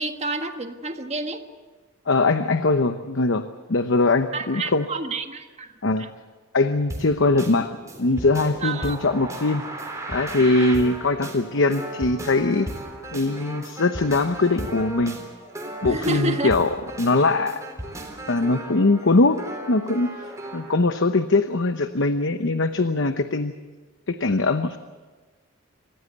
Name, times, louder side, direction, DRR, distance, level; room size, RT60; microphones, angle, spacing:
voice 1, 0.0-1.4 4.3-5.7 6.0-6.1 8.6-9.0 10.6-10.7 15.8-16.5, right 2 dB, 30° right, 6 dB, 1.5 m, -29 dB
voice 2, 2.1-4.9 5.8-6.1 6.5-7.7 8.0-9.6 10.1-12.7 13.1-15.2 15.8-16.7 17.0-17.6 18.3-19.4 19.7-20.1 20.5-23.5 24.1-24.8, left 3 dB, 65° left, 9 dB, 0.9 m, -21 dB
sound 1, 6.9-20.7, right 1 dB, 15° right, 3.6 m, -36 dB
27.0 x 15.5 x 8.1 m, 1.3 s
head